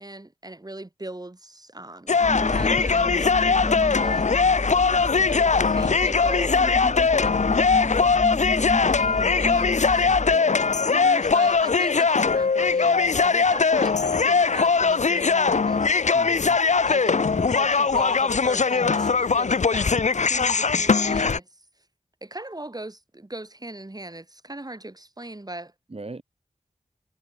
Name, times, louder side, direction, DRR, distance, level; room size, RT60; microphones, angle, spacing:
voice 1, 0.0-6.8 7.2-7.7 8.8-10.2 10.9-16.3 16.9-21.6 22.2-25.7, right 1 dB, 30° right, 7.3 m, -39 dB
sound 1, 2.1-21.4, left 4 dB, 60° left, 0.7 m, -21 dB
sound 2, 2.2-10.4, left 2 dB, 25° left, 1.6 m, -31 dB
voice 2, 4.9-5.3 10.2-11.3 16.1-16.6 25.9-26.2, right 2 dB, 45° right, 5.2 m, -40 dB
wide cardioid pair, 75°, 14 cm